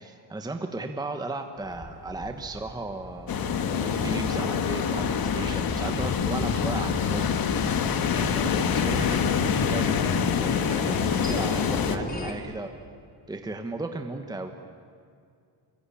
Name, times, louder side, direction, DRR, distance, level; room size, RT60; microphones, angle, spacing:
voice 1, 0.0-7.4 8.1-12.7 13.3-14.5, right 2 dB, 10° right, 5 dB, 1.2 m, -36 dB
sound 1, 1.6-12.3, left 2 dB, 20° left, 3.5 m, -38 dB
sound 2, 3.3-12.0, left 6 dB, 60° left, 1.8 m, -26 dB
25.0 x 23.0 x 10.0 m, 2.3 s
cardioid pair, 170°, 41 cm